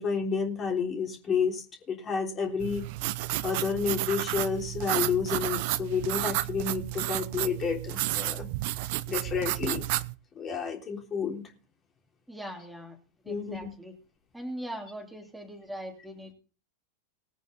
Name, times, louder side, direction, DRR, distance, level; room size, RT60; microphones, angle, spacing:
voice 1, 0.0-2.9 3.4-8.5 9.1-9.8 10.4-11.4 13.3-13.7, left 6 dB, 25° left, 2 dB, 3.5 m, -30 dB
sound 1, 2.6-10.1, right 18 dB, 50° right, 0.8 m, -31 dB
voice 2, 12.3-13.0 13.2-13.9 14.3-16.3, equal, 5° right, 2 dB, 3.2 m, -40 dB
20.5 x 9.2 x 4.0 m, 0.35 s
figure-of-eight pair, 90°, 0 cm